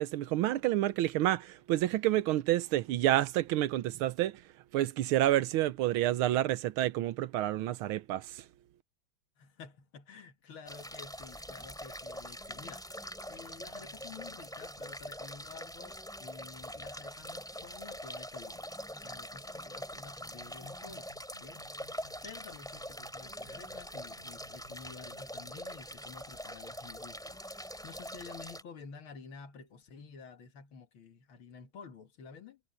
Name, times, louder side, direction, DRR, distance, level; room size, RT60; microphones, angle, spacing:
voice 1, 0.0-4.4 4.7-8.2, right 14 dB, 85° right, 1.6 m, -29 dB
voice 2, 9.4-18.7 19.0-21.1 21.4-32.6, left 5 dB, 70° left, 2.5 m, -51 dB
sound 1, 10.7-28.6, equal, ahead, 2.8 m, -44 dB
sound 2, 20.3-25.5, left 1 dB, 20° left, 6.6 m, -61 dB
omnidirectional pair, 2.3 m